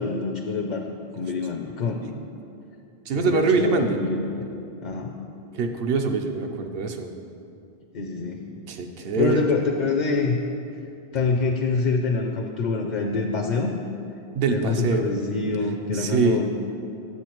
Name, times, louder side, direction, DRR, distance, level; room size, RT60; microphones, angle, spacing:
voice 1, 0.0-2.0 3.1-4.4 4.8-5.2 7.9-8.6 9.0-10.4 11.1-13.7 14.5-16.4, left 4 dB, 55° left, 2 dB, 0.6 m, -26 dB
voice 2, 3.1-4.0 5.5-7.1 8.7-9.5 14.3-15.0 15.9-16.4, right 4 dB, 65° right, 5 dB, 0.8 m, -24 dB
9.7 x 7.6 x 3.0 m, 2.6 s
omnidirectional pair, 1.1 m